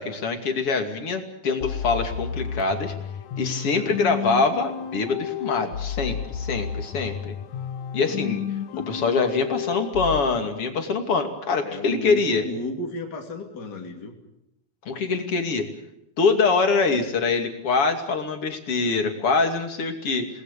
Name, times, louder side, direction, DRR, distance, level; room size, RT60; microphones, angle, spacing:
voice 1, 0.0-2.9 3.4-7.4 7.9-8.4 8.8-12.5 14.9-15.7 16.2-20.3, left 4 dB, 50° left, 5 dB, 3.4 m, -24 dB
sound 1, 1.6-10.2, left 8 dB, 70° left, 2.5 m, -32 dB
voice 2, 3.7-4.2 8.1-8.2 8.7-8.9 11.6-14.1, left 2 dB, 35° left, 1 dB, 3.3 m, -34 dB
29.0 x 20.0 x 6.8 m, 0.84 s
omnidirectional pair, 3.4 m